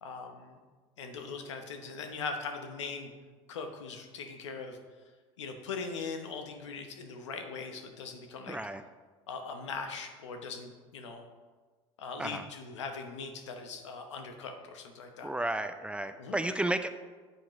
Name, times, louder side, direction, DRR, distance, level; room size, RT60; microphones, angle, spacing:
voice 1, 0.0-0.6 1.0-3.1 3.5-4.8 5.4-8.6 9.3-11.3 12.0-15.3 16.2-16.4, left 4 dB, 90° left, 6 dB, 1.0 m, -40 dB
voice 2, 8.5-8.8 12.2-12.4 15.2-16.9, right 1 dB, 5° right, 9 dB, 0.5 m, -32 dB
8.4 x 8.2 x 3.1 m, 1.4 s
hypercardioid pair, 80°, 15 cm